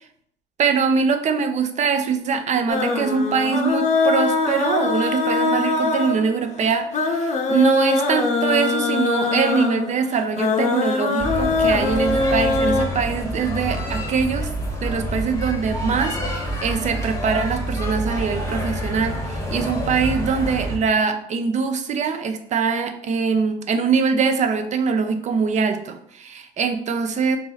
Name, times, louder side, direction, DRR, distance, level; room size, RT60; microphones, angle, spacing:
voice 1, 0.6-14.5 14.8-27.4, right 5 dB, 45° right, 8 dB, 0.5 m, -23 dB
sound 1, 2.7-12.9, left 3 dB, 45° left, 0.7 m, -22 dB
sound 2, 11.2-20.8, equal, 15° left, 0.9 m, -27 dB
4.0 x 2.8 x 3.8 m, 0.69 s
cardioid pair, 110°, 17 cm